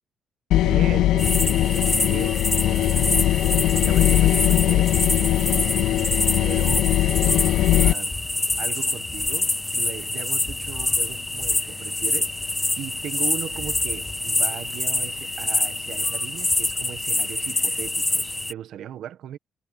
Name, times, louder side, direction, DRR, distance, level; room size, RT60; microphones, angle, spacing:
sound 1, 0.5-7.9, left 13 dB, 85° left, 0.3 m, -20 dB
voice 1, 0.5-3.3 3.7-5.8 6.4-8.1 8.6-19.4, right 11 dB, 80° right, 1.4 m, -38 dB
sound 2, 1.2-18.5, left 2 dB, 15° left, 0.4 m, -26 dB
cardioid pair, 90°, 0 cm